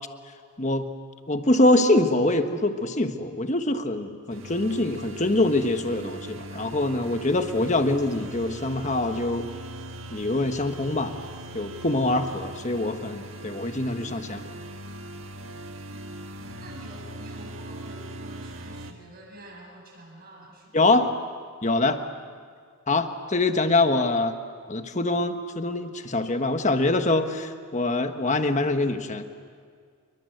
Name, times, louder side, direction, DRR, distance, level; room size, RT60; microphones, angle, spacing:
voice 1, 1.3-9.5 10.1-11.1 11.5-14.4 20.7-21.1 21.6-22.0 22.9-24.3 24.7-29.2, left 2 dB, 35° left, 7 dB, 1.4 m, -24 dB
sound 1, 4.3-18.9, right 1 dB, 60° right, 1.7 m, -40 dB
voice 2, 16.6-20.9, right 1 dB, 45° right, -1 dB, 7.7 m, -47 dB
28.5 x 23.0 x 8.0 m, 2.1 s
head